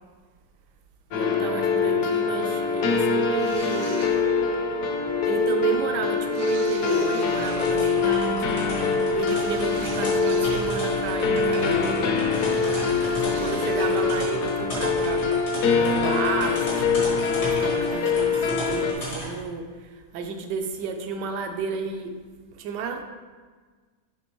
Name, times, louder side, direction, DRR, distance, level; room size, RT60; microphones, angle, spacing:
sound 1, 1.1-18.9, left 4 dB, 65° left, 1.0 m, -24 dB
voice 1, 1.1-4.1 5.2-12.1 13.2-15.3 15.8-22.1 22.6-23.0, right 5 dB, 85° right, 5 dB, 1.2 m, -32 dB
sound 2, 3.3-4.5 6.3-7.7 9.3-11.4 12.3-14.3, right 4 dB, 60° right, 0.7 m, -44 dB
sound 3, 7.3-19.4, left 1 dB, 85° left, 2.5 m, -35 dB
9.4 x 3.4 x 3.0 m, 1.4 s
omnidirectional pair, 1.8 m